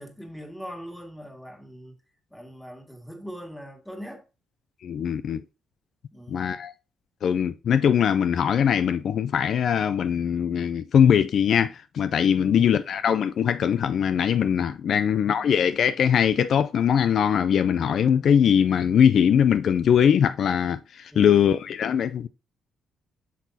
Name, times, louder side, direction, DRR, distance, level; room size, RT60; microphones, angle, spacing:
voice 1, 0.0-2.0 2.3-4.2 6.1-6.6 12.4-12.7 14.9-15.5 21.1-21.5, equal, ahead, 1.9 m, -41 dB
voice 2, 4.8-5.4 6.3-6.7 7.2-22.3, left 8 dB, 65° left, 0.4 m, -21 dB
8.3 x 6.2 x 2.7 m
cardioid pair, 90°, 0 cm